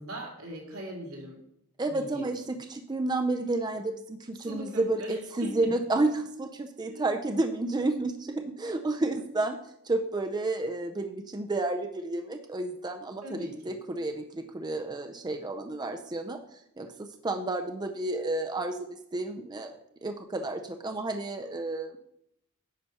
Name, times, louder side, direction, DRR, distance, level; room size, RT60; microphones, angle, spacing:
voice 1, 0.0-1.4 1.8-2.3 4.4-5.7 6.9-7.1 13.2-13.8, right 1 dB, 80° right, -1 dB, 2.4 m, -40 dB
voice 2, 1.8-22.0, right 2 dB, 20° right, 5 dB, 0.5 m, -31 dB
9.8 x 4.2 x 5.6 m, 0.77 s
head